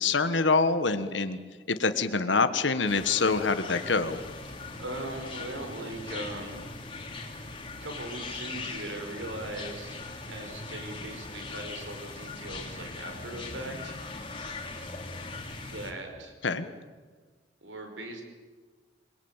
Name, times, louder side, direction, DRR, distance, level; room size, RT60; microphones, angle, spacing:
voice 1, 0.0-1.4 1.7-4.2 16.4-16.7, left 4 dB, 80° left, 10 dB, 1.5 m, -25 dB
sound 1, 2.9-15.9, left 3 dB, 30° left, 3.3 m, -40 dB
voice 2, 4.8-6.6 7.8-10.0 10.3-14.0 15.5-16.3 17.6-18.2, right 1 dB, 85° right, 5 dB, 5.2 m, -39 dB
27.5 x 21.5 x 9.0 m, 1.4 s
head